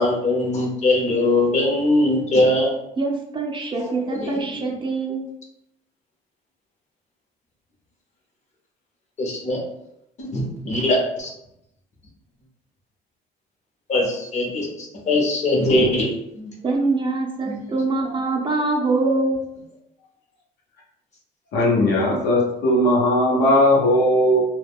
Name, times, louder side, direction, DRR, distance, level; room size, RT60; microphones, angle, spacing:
voice 1, 0.0-2.8 3.8-4.4 9.2-9.6 10.2-11.3 13.9-16.1 16.4-16.5 17.5-17.6 18.0-18.2 19.0-19.2, left 1 dB, 45° left, 0 dB, 0.8 m, -21 dB
voice 2, 3.0-5.3 16.6-19.4, right 3 dB, 30° right, 0 dB, 0.5 m, -24 dB
voice 3, 21.5-24.5, left 1 dB, 75° left, -3 dB, 0.9 m, -18 dB
2.2 x 2.2 x 3.4 m, 0.80 s
cardioid pair, 110°, 17 cm